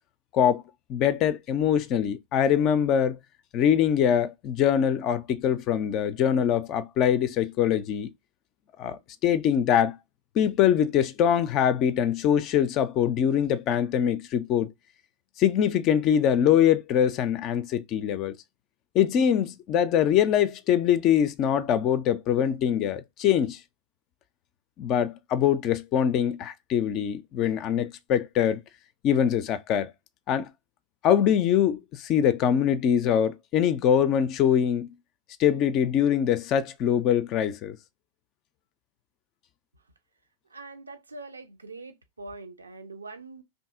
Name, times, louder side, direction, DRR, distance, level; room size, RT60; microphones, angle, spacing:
voice 1, 0.9-3.2 3.5-8.1 8.8-10.0 10.4-14.7 15.4-18.3 18.9-23.6 24.8-28.6 29.0-29.9 30.3-30.5 31.0-34.9 35.4-37.8, left 9 dB, 35° left, 0.4 m, -23 dB
voice 2, 40.5-43.4, right 3 dB, 75° right, 0.5 m, -43 dB
2.7 x 2.6 x 3.5 m
figure-of-eight pair, 90°, 0 cm